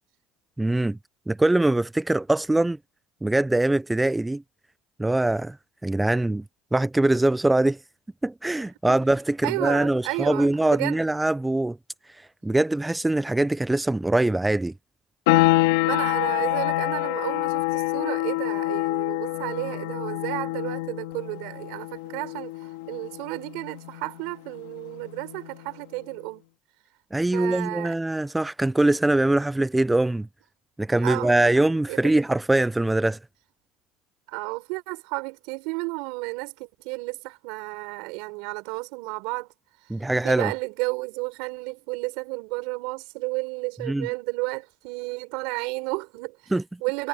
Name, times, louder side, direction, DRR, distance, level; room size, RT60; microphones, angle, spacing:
voice 1, 0.6-1.0 1.3-2.8 3.2-4.4 5.0-5.6 5.8-6.4 6.7-7.8 8.2-11.8 12.4-14.7 27.1-30.3 30.8-33.2 39.9-40.5 43.8-44.1 46.5-46.6, right 2 dB, 10° right, 0.4 m, -22 dB
voice 2, 9.4-11.1 15.6-26.4 27.3-27.9 31.0-31.5 31.9-32.3 34.3-39.5 40.2-46.5 46.8-47.1, right 28 dB, 80° right, 5.6 m, -32 dB
sound 1, 15.3-25.8, left 19 dB, 90° left, 2.1 m, -27 dB
supercardioid pair, 95°, 0 cm